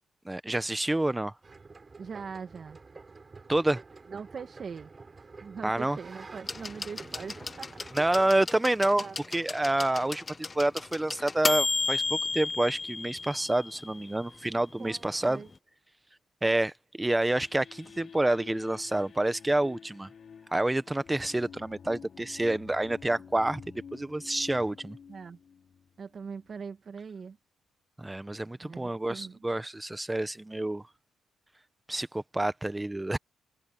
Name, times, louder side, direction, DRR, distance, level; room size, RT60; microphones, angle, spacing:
voice 1, 0.2-1.3 3.5-3.8 5.6-6.0 7.9-9.1 9.3-10.2 10.5-15.4 16.4-20.1 20.5-25.0 28.0-30.8 31.9-33.2, right 1 dB, 10° right, 1.1 m, -28 dB
sound 1, 1.4-8.2, right 4 dB, 30° right, 7.2 m, -49 dB
voice 2, 2.0-2.8 4.1-4.9 5.4-8.4 9.0-9.2 14.8-15.5 25.1-25.4 26.0-27.4 28.6-29.4, right 6 dB, 45° right, 2.1 m, -42 dB
sound 2, 6.5-14.2 15.4-15.5, left 3 dB, 25° left, 0.6 m, -33 dB
sound 3, 17.3-26.7, left 6 dB, 50° left, 5.5 m, -50 dB
cardioid pair, 90°, 0 cm